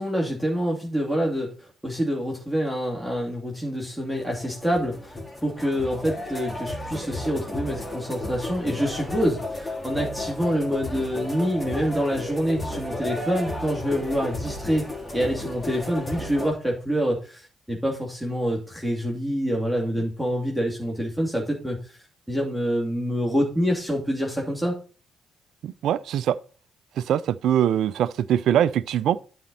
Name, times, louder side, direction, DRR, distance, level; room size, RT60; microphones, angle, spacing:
voice 1, 0.0-14.9 15.1-22.0 22.3-24.8, equal, ahead, 2.5 m, -26 dB
sound 1, 4.1-16.5, left 1 dB, 20° left, 3.8 m, -33 dB
voice 2, 25.6-26.3 27.0-29.2, right 10 dB, 60° right, 0.3 m, -22 dB
12.5 x 4.3 x 4.0 m
figure-of-eight pair, 45°, 0 cm